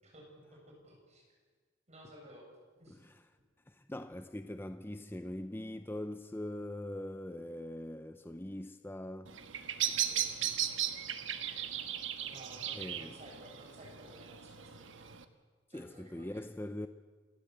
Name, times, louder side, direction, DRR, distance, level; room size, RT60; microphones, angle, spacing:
voice 1, 0.0-1.3 1.9-3.0 10.0-10.3 12.3-15.1 15.7-16.4, right 1 dB, 35° right, 7.8 m, -55 dB
voice 2, 3.7-9.4 12.7-13.1 15.7-16.9, left 1 dB, 10° left, 0.6 m, -42 dB
Bird vocalization bird call bird song, 9.3-15.2, right 10 dB, 85° right, 1.3 m, -37 dB
27.5 x 13.5 x 8.1 m
head